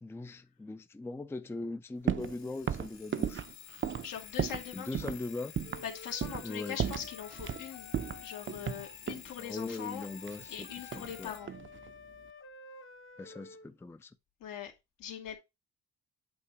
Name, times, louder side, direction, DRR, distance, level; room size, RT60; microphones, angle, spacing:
voice 1, 0.0-3.5 4.7-5.5 6.4-6.8 9.4-11.3 13.2-14.2, left 2 dB, 10° left, 0.4 m, -40 dB
sound 1, 2.1-2.4 2.7-4.7 4.9-5.2 5.6-5.9 6.2-6.5 6.8-7.6 7.9-9.3 10.2-11.2 11.4-11.9, right 8 dB, 35° right, 0.6 m, -34 dB
Alarm, 2.2-11.5, left 10 dB, 55° left, 2.2 m, -51 dB
voice 2, 4.0-5.1 5.8-7.9 8.2-10.1 10.5-11.5 14.4-14.7 15.0-15.4, left 9 dB, 75° left, 1.8 m, -41 dB
Wind instrument woodwind instrument, 5.6-9.2 9.9-13.7, left 4 dB, 40° left, 0.9 m, -52 dB
8.4 x 3.0 x 4.7 m
cardioid pair, 95°, 33 cm